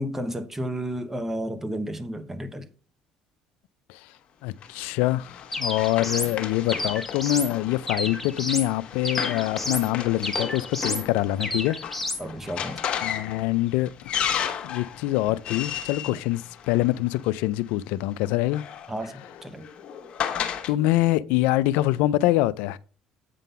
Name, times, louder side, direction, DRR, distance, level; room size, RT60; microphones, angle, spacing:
voice 1, 0.0-2.7 12.2-12.8 16.1-16.2 18.9-19.7, equal, 15° right, 0.9 m, -32 dB
voice 2, 4.4-11.8 13.0-14.1 14.6-18.6 20.7-22.8, left 16 dB, 80° left, 0.3 m, -25 dB
Run, 4.6-17.2 18.2-20.7, left 8 dB, 50° left, 1.1 m, -34 dB
sound 1, 5.5-6.3 6.7-7.5 7.9-8.7 9.0-9.9 10.2-11.1 11.4-12.2, left 2 dB, 5° left, 1.3 m, -31 dB
8.2 x 3.8 x 5.5 m
supercardioid pair, 90°, 2 cm